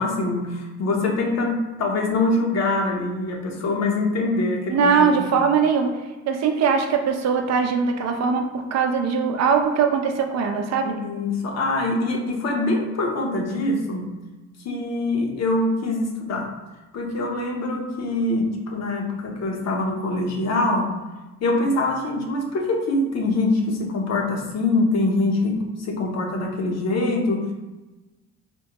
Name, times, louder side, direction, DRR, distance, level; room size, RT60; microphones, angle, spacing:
voice 1, 0.0-5.3 10.8-14.1 14.6-16.5 16.9-20.9 21.4-27.5, left 2 dB, 60° left, 1 dB, 0.7 m, -24 dB
voice 2, 4.7-6.0 6.3-11.0, right 6 dB, 60° right, 4 dB, 0.5 m, -21 dB
3.6 x 2.2 x 2.9 m, 1.1 s
cardioid pair, 90°, 30 cm